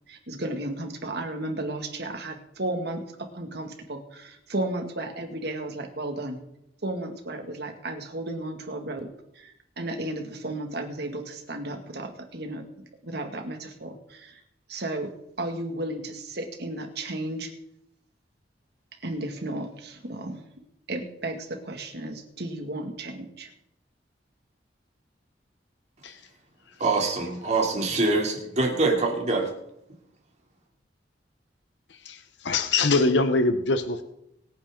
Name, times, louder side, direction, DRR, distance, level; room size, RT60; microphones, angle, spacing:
voice 1, 0.1-6.4 6.8-9.1 9.3-12.6 13.0-14.4 14.7-15.1 15.4-17.5 19.0-20.4 20.9-23.5, right 1 dB, 65° right, 4 dB, 2.3 m, -34 dB
voice 2, 26.8-29.5, right 3 dB, 40° right, 0 dB, 3.2 m, -24 dB
voice 3, 32.4-34.0, left 3 dB, 80° left, 9 dB, 1.0 m, -23 dB
24.0 x 9.5 x 3.9 m, 0.79 s
head